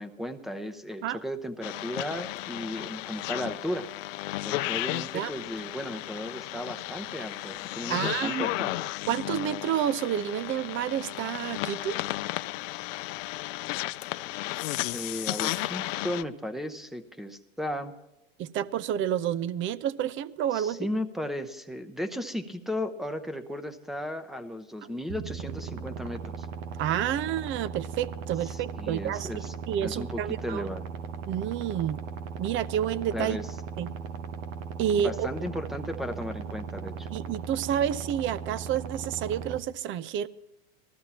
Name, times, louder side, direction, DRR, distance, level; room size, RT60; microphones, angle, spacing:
voice 1, 0.0-3.9 4.4-8.8 14.9-17.9 20.5-26.5 28.4-29.5 29.8-30.8 33.1-33.5 35.0-37.1, left 1 dB, ahead, 10 dB, 0.8 m, -35 dB
sound 1, 1.6-16.2, left 17 dB, 70° left, 0.6 m, -34 dB
voice 2, 7.9-8.5 9.1-12.0 18.4-20.9 26.8-30.7 31.3-32.0 32.4-33.4 33.8-33.9 34.8-35.3 37.1-40.3, right 10 dB, 30° right, 18 dB, 0.5 m, -29 dB
sound 2, 25.1-39.6, right 6 dB, 80° right, 1.2 m, -38 dB
19.5 x 14.0 x 2.9 m, 0.95 s
supercardioid pair, 115°, 40 cm